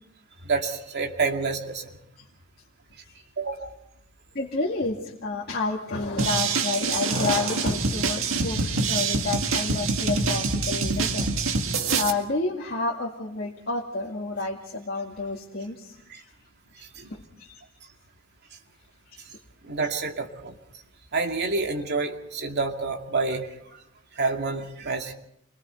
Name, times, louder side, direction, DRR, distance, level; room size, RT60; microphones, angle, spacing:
voice 1, 0.4-1.9 3.4-3.7 16.1-16.2 16.8-17.1 19.3-19.4 19.6-20.5 21.1-23.8 24.1-25.1, right 4 dB, 55° right, 2 dB, 2.4 m, -28 dB
voice 2, 4.3-16.2 17.1-17.6, left 3 dB, 50° left, -3 dB, 2.3 m, -30 dB
sound 1, 6.2-12.1, right 4 dB, 70° right, 2.0 m, -25 dB
28.5 x 22.0 x 4.5 m, 0.77 s
head